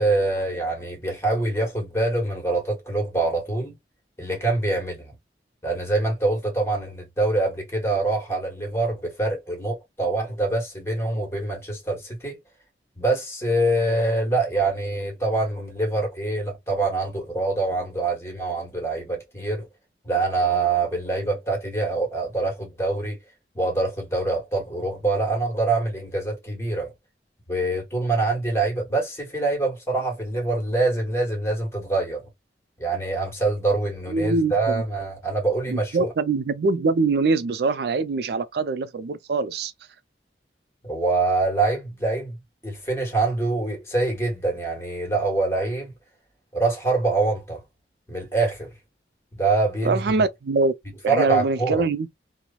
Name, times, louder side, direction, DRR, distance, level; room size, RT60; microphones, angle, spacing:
voice 1, 0.0-3.7 4.2-5.1 5.6-12.4 13.0-19.7 20.0-23.2 23.5-26.9 27.5-32.3 32.8-36.1 40.8-42.4 42.6-45.9 46.5-47.6 48.1-48.7 49.4-50.0 51.1-51.9, right 2 dB, 15° left, 1.2 m, -25 dB
voice 2, 34.1-34.8 35.7-39.7 49.8-50.7 51.0-52.1, right 3 dB, 60° right, 0.4 m, -23 dB
3.0 x 2.0 x 2.3 m
head